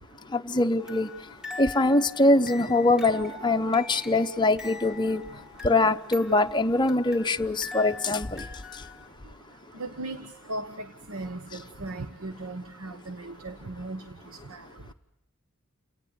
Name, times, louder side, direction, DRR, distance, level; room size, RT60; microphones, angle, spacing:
voice 1, 0.3-1.1 1.6-5.2 5.6-8.5, left 2 dB, 20° left, 0.8 m, -23 dB
sound 1, 0.8-9.1, left 2 dB, 5° right, 2.0 m, -43 dB
voice 2, 9.8-10.2 10.5-14.0 14.5-14.6, right 2 dB, 75° right, 1.2 m, -37 dB
29.0 x 18.0 x 8.0 m
head